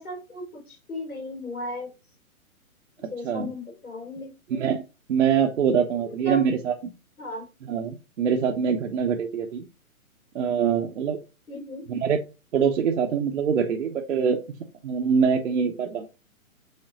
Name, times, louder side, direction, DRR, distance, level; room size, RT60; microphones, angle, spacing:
voice 1, 0.0-1.9 3.1-4.8 6.0-6.5 7.2-7.5 11.5-11.8, left 1 dB, 80° left, 1 dB, 3.6 m, -36 dB
voice 2, 3.0-3.5 4.5-4.8 5.1-6.7 7.6-9.6 10.3-11.2 11.9-12.2 12.5-14.4 14.8-16.1, right 7 dB, 55° right, 2 dB, 1.0 m, -24 dB
6.6 x 3.7 x 3.9 m, 0.29 s
figure-of-eight pair, 135°, 43 cm